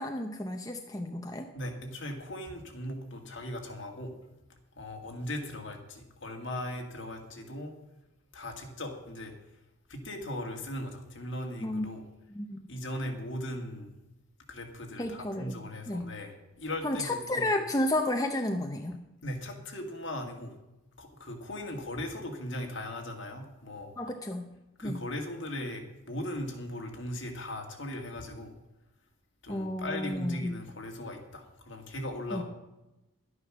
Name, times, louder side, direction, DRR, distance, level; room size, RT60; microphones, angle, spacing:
voice 1, 0.0-1.5 11.6-11.9 12.3-12.7 15.0-15.6 15.9-16.0 16.8-19.0 24.0-24.5 24.8-25.0 29.5-30.5 32.3-32.4, left 1 dB, 15° left, 4 dB, 0.7 m, -32 dB
voice 2, 1.5-4.1 4.7-7.7 8.3-9.3 9.9-12.0 12.7-13.9 14.5-17.1 17.3-17.5 19.2-20.5 21.0-23.9 24.8-28.5 29.4-32.4, left 1 dB, 60° left, 3 dB, 2.1 m, -38 dB
11.5 x 9.7 x 6.2 m, 0.98 s
head